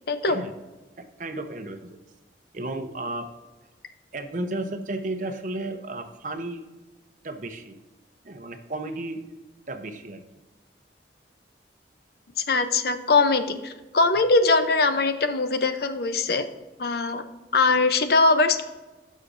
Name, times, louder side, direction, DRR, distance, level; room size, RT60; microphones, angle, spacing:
voice 1, 1.0-2.0 2.5-3.3 4.1-6.6 7.2-7.8 8.2-9.2 9.7-10.2, right 2 dB, 45° right, 7 dB, 0.8 m, -33 dB
voice 2, 12.5-16.5 16.8-17.2 17.5-18.6, left 3 dB, 60° left, 9 dB, 0.6 m, -21 dB
14.5 x 6.4 x 2.6 m, 1.2 s
head